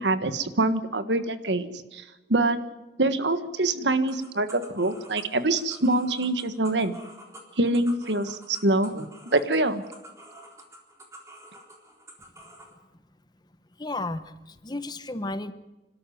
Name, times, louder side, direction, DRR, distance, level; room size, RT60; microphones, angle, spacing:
voice 1, 0.0-2.0 2.3-2.6 3.0-6.9 7.6-9.1 9.3-9.8, right 2 dB, 80° right, 11 dB, 1.6 m, -25 dB
sound 1, 4.1-12.7, right 1 dB, 15° right, 3.7 m, -49 dB
voice 2, 13.8-15.5, left 2 dB, 25° left, 12 dB, 1.0 m, -33 dB
27.0 x 13.0 x 9.3 m, 1.1 s
head